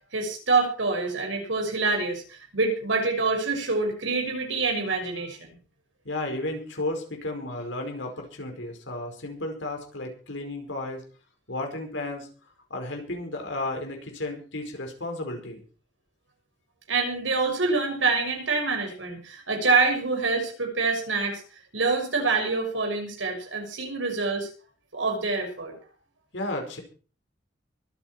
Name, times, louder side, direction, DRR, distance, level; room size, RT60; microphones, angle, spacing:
voice 1, 0.1-5.5 16.9-21.4 21.7-24.5 24.9-25.7, right 4 dB, 85° right, 3 dB, 6.4 m, -26 dB
voice 2, 6.1-11.0 11.5-12.3 12.7-15.6 26.3-26.8, left 2 dB, 70° left, 3 dB, 5.2 m, -33 dB
23.5 x 9.5 x 4.7 m, 0.39 s
head